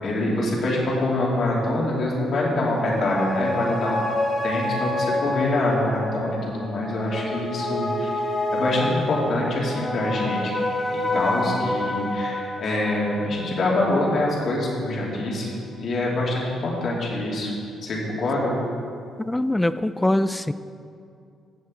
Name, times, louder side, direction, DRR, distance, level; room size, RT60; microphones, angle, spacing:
voice 1, 0.0-4.1 4.4-10.5 10.9-15.5 15.8-17.5 17.8-18.5, left 1 dB, 60° left, -4 dB, 2.9 m, -25 dB
sound 1, 2.5-15.3 15.7-15.8, left 2 dB, 30° left, 1.5 m, -29 dB
voice 2, 19.2-20.5, left 1 dB, 10° left, 13 dB, 0.4 m, -23 dB
15.0 x 7.8 x 3.9 m, 2.4 s
cardioid pair, 90°, 0 cm